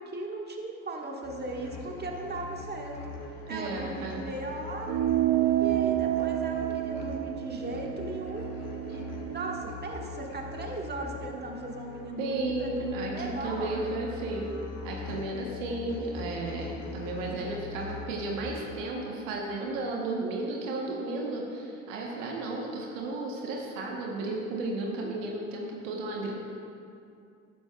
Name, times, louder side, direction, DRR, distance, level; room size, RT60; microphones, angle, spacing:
voice 1, 0.0-3.0 3.5-5.0 5.6-8.5 8.9-14.0, right 2 dB, 25° right, 0 dB, 1.7 m, -37 dB
sound 1, 1.2-18.7, left 3 dB, 45° left, 2.0 m, -41 dB
voice 2, 3.5-4.2 8.9-9.0 12.2-14.6 14.8-26.3, right 2 dB, 80° right, -1 dB, 1.3 m, -33 dB
sound 2, 4.9-9.7, right 14 dB, 60° right, 0.5 m, -29 dB
12.0 x 10.5 x 2.4 m, 2.5 s
hypercardioid pair, 55°, 38 cm